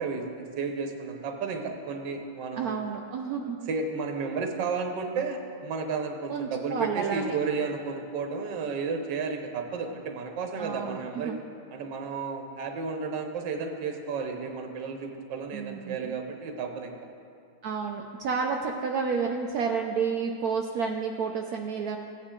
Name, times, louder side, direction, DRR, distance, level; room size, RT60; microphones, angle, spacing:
voice 1, 0.0-2.8 3.7-11.3 11.7-17.0, right 4 dB, 60° right, 4 dB, 1.5 m, -32 dB
voice 2, 2.6-3.7 6.3-7.3 10.6-11.4 15.5-16.2 17.6-22.0, right 5 dB, 75° right, 2 dB, 0.8 m, -30 dB
16.0 x 9.2 x 3.7 m, 2.5 s
omnidirectional pair, 2.4 m